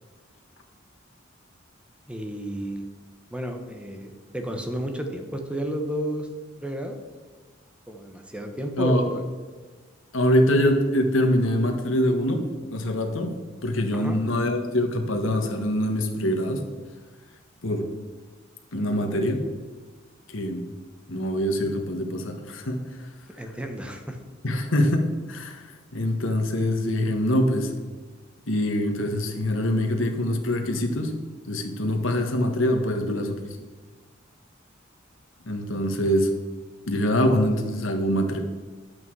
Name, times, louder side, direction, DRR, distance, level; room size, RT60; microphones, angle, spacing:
voice 1, 2.1-2.8 3.3-6.3 6.6-7.0 7.9-9.2 13.9-14.2 23.3-24.2, right 1 dB, 5° right, 5 dB, 1.1 m, -32 dB
voice 2, 10.1-16.6 17.6-17.9 18.7-19.4 20.3-20.7 21.1-22.8 24.4-25.6 25.9-27.7 28.5-31.2 31.5-33.4 35.4-36.3 36.9-38.4, equal, 80° left, 4 dB, 1.4 m, -24 dB
11.0 x 8.3 x 4.8 m, 1.4 s
head